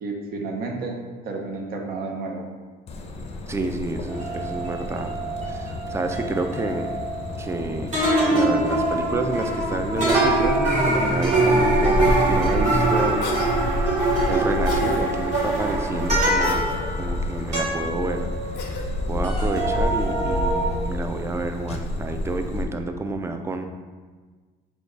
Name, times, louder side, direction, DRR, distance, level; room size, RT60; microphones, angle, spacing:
voice 1, 0.0-1.0 1.2-2.5, right 3 dB, 65° right, 1 dB, 0.7 m, -31 dB
sound 1, 2.9-22.6, left 1 dB, 40° left, 0.5 m, -30 dB
voice 2, 3.5-5.1 5.5-6.9 7.4-7.9 8.3-13.3 13.8-18.3 18.7-23.7, right 2 dB, 15° right, 6 dB, 0.3 m, -29 dB
sound 2, 4.1-7.6 7.9-19.0 19.2-20.7, right 2 dB, 45° right, 1.3 m, -24 dB
Cough, 13.2-13.5 14.6-15.0 16.4-16.8 18.5-18.9, left 5 dB, 85° left, 0.6 m, -36 dB
4.4 x 2.3 x 3.9 m, 1.4 s
cardioid pair, 110°, 17 cm